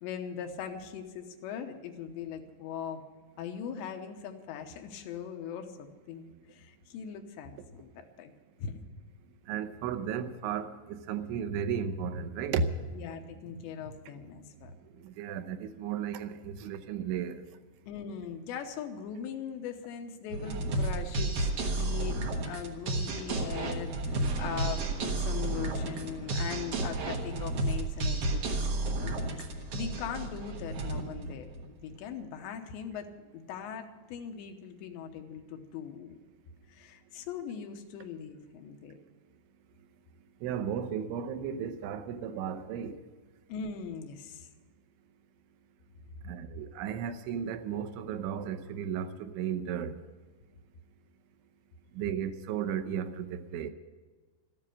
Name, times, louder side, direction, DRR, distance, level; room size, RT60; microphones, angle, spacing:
voice 1, 0.0-3.0 3.4-8.3 8.6-8.8 12.9-14.7 17.9-22.2 22.5-29.2 29.7-31.5 31.8-36.2 36.7-39.0 43.5-44.5, left 7 dB, 80° left, 5 dB, 3.2 m, -40 dB
voice 2, 9.5-12.9 13.8-13.9 15.0-17.4 40.4-43.0 46.2-50.0 51.9-53.7, right 7 dB, 90° right, 9 dB, 3.3 m, -34 dB
sound 1, 20.3-32.0, right 2 dB, 65° right, 1.5 m, -32 dB
13.5 x 9.6 x 9.9 m, 1.4 s
omnidirectional pair, 5.2 m